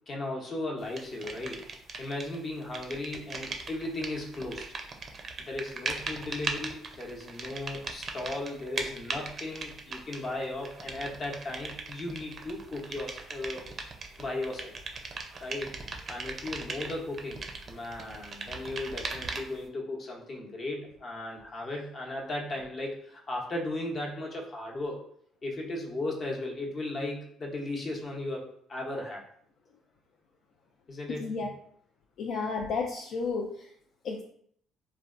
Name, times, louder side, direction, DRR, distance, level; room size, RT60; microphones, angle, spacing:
voice 1, 0.1-1.7 2.0-4.8 5.4-13.6 14.2-14.7 15.4-15.8 16.1-25.1 25.4-29.2 30.9-31.3, left 2 dB, 45° left, -1 dB, 0.8 m, -36 dB
sound 1, 1.0-2.4 2.6-19.6, right 4 dB, 45° right, 0.4 m, -39 dB
voice 2, 31.2-31.5 32.2-33.7 34.0-34.2, left 4 dB, 65° left, 0 dB, 0.3 m, -32 dB
3.1 x 2.2 x 2.5 m, 0.65 s
supercardioid pair, 65°, 0 cm